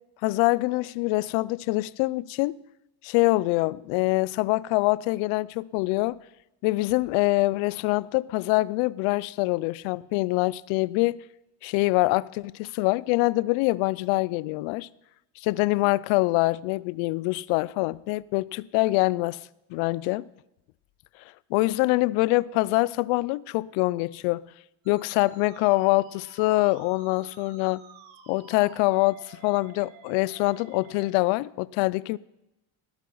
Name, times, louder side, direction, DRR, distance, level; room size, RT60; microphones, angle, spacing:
voice 1, 0.2-2.6 3.0-6.2 6.6-11.2 11.6-14.9 15.5-19.4 19.7-20.3 21.5-24.5 24.9-27.8 28.3-32.2, left 21 dB, 85° left, 0.6 m, -24 dB
Musical instrument, 24.8-31.1, right 7 dB, 80° right, 2.6 m, -52 dB
17.5 x 8.5 x 5.6 m
cardioid pair, 115°, 46 cm